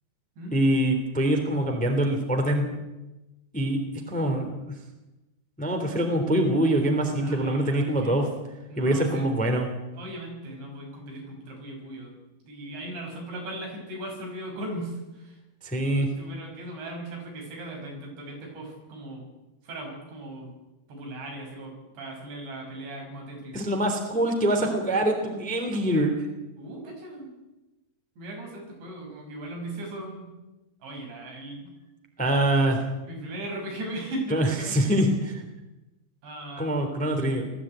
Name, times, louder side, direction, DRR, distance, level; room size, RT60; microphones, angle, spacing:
voice 1, 0.5-2.7 3.5-3.8 4.1-4.7 5.6-8.2 8.8-9.7 15.6-16.1 23.5-26.1 32.2-32.8 34.3-35.3 36.6-37.5, right 1 dB, ahead, 3 dB, 2.2 m, -24 dB
voice 2, 7.2-8.1 8.7-9.3 9.9-12.1 12.4-15.4 16.2-19.2 19.6-20.5 20.9-23.6 26.6-27.3 28.2-30.3 30.8-31.7 33.1-34.9 36.2-36.7, right 1 dB, 80° right, 0 dB, 8.3 m, -38 dB
20.0 x 14.5 x 9.0 m, 1.0 s
omnidirectional pair, 5.0 m